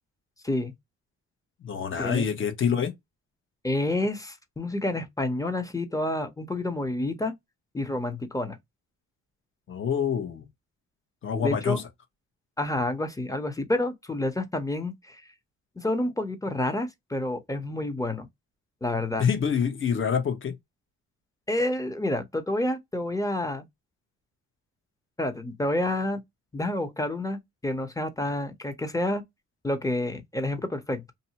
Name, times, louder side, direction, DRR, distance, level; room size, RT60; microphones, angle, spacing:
voice 1, 1.6-2.9 9.7-10.5 11.2-11.9 19.2-20.6, left 7 dB, 40° left, 1.0 m, -26 dB
voice 2, 3.6-7.3 7.7-8.6 11.4-11.8 12.6-15.2 15.8-18.3 18.8-19.3 21.5-23.6 25.2-26.2 26.5-29.2 29.6-31.1, left 1 dB, 10° left, 0.8 m, -29 dB
2.7 x 2.2 x 2.7 m
cardioid pair, 90°, 30 cm